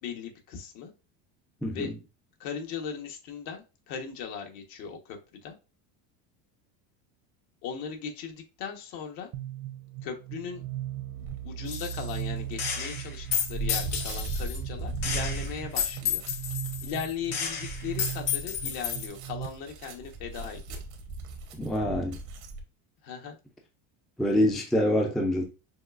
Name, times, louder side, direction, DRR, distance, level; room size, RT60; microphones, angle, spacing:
voice 1, 0.0-0.9 1.7-1.9 2.4-5.6 7.6-9.3 10.0-10.6 11.2-16.2 16.8-20.8 23.0-23.4, left 7 dB, 70° left, 1.3 m, -38 dB
sound 1, 9.3-19.5, right 13 dB, 50° right, 0.6 m, -38 dB
sound 2, 11.2-11.5 12.1-22.6, right 2 dB, 85° right, 1.2 m, -39 dB
Gunshot gunfire, 11.7-12.2 12.6-14.6 15.0-19.1, left 8 dB, 85° left, 1.9 m, -32 dB
voice 2, 21.5-22.2 24.2-25.4, left 1 dB, ahead, 0.3 m, -25 dB
6.2 x 2.4 x 2.4 m
cardioid pair, 140°, 42 cm